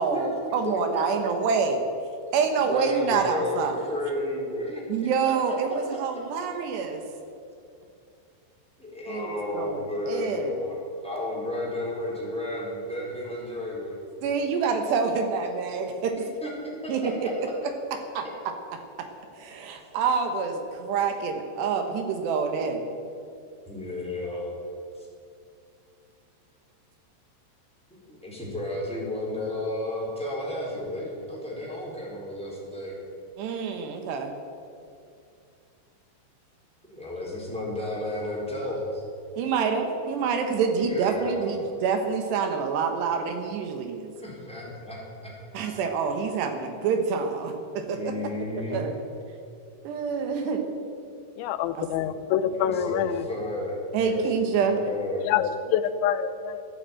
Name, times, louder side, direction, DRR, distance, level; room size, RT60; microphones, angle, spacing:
voice 1, 0.0-1.8 2.3-3.7 4.9-7.0 9.1-10.5 14.2-16.1 16.9-17.0 18.2-18.3 19.0-19.1 19.4-22.8 33.4-34.3 39.4-44.1 45.5-48.1 48.5-48.9 49.8-50.6 51.7-51.9 53.9-54.8, right 5 dB, 75° right, 5 dB, 3.2 m, -27 dB
voice 2, 0.6-1.0 1.3-1.4 2.2-5.6 5.9-6.0 8.8-14.0 16.1-17.1 17.4-17.5 19.6-19.7 20.5-21.0 21.4-21.8 22.1-22.5 22.9-23.3 23.7-24.6 24.9-25.1 27.9-33.0 33.9-34.8 36.8-39.0 39.9-40.3 40.7-41.7 44.2-45.3 45.6-45.7 46.1-46.9 47.5-48.8 50.3-51.1 52.0-52.1 52.4-55.3, left 1 dB, ahead, -4 dB, 3.5 m, -34 dB
voice 3, 51.4-53.2 55.2-56.6, left 9 dB, 90° left, 12 dB, 3.0 m, -26 dB
14.0 x 10.5 x 8.8 m, 2.5 s
omnidirectional pair, 5.2 m